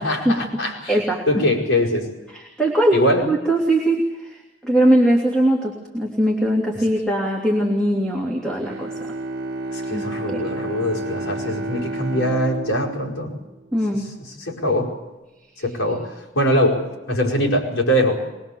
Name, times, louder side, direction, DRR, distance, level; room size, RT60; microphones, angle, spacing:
voice 1, 0.0-2.1 2.9-3.2 9.7-13.3 14.4-14.9 15.6-16.1 16.3-16.8 17.1-18.2, equal, 85° left, -1 dB, 5.1 m, -22 dB
voice 2, 0.9-1.4 2.3-8.9 9.9-10.4 13.7-14.1, right 1 dB, 5° left, -2 dB, 3.1 m, -21 dB
Bowed string instrument, 8.6-14.2, right 2 dB, 50° right, 1.3 m, -31 dB
23.0 x 22.0 x 7.2 m, 1.1 s
head